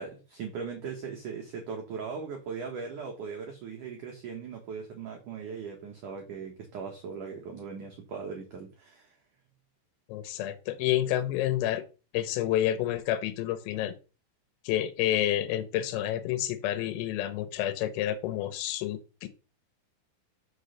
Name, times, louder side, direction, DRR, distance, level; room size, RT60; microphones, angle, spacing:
voice 1, 0.0-9.2, right 5 dB, 70° right, 2 dB, 1.9 m, -39 dB
voice 2, 10.1-11.8 12.1-14.0 14.7-19.3, left 12 dB, 90° left, 11 dB, 3.6 m, -29 dB
6.3 x 6.2 x 6.6 m, 0.34 s
omnidirectional pair, 5.8 m